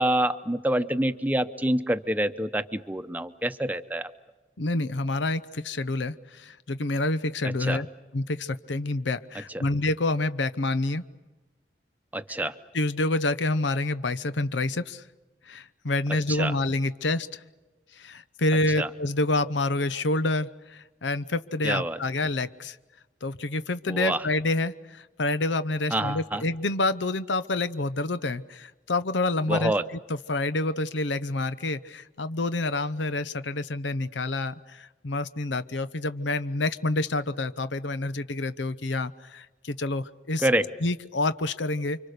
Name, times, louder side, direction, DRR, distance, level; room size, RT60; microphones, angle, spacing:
voice 1, 0.0-4.1 7.4-7.8 9.5-9.6 12.1-12.5 16.3-16.6 18.8-18.9 21.6-22.0 23.9-24.2 25.9-26.4 29.5-29.8 40.4-40.7, right 1 dB, 10° right, 10 dB, 0.8 m, -27 dB
voice 2, 4.6-7.9 8.1-11.0 12.7-15.0 15.5-17.4 18.0-22.8 23.2-29.7 30.1-40.5 40.8-42.0, left 2 dB, 90° left, 13 dB, 0.9 m, -28 dB
30.0 x 25.0 x 6.7 m, 1.2 s
head